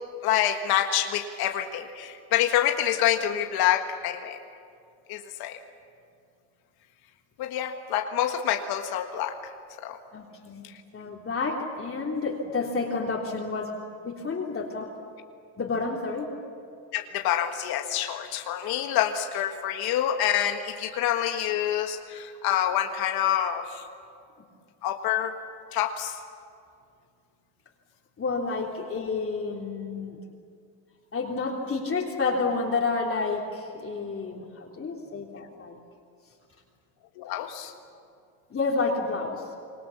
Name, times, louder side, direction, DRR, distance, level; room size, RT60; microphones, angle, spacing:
voice 1, 0.2-4.4 5.1-5.6 7.4-9.3 9.8-10.0 16.9-23.8 24.8-25.3 25.7-26.2 37.2-37.7, left 11 dB, 75° left, 5 dB, 1.6 m, -27 dB
voice 2, 10.1-13.8 14.0-14.9 15.6-16.3 28.2-30.2 31.1-35.8 38.5-39.4, left 4 dB, 35° left, -2 dB, 3.3 m, -30 dB
28.0 x 22.0 x 7.2 m, 2.4 s
supercardioid pair, 90°, 37 cm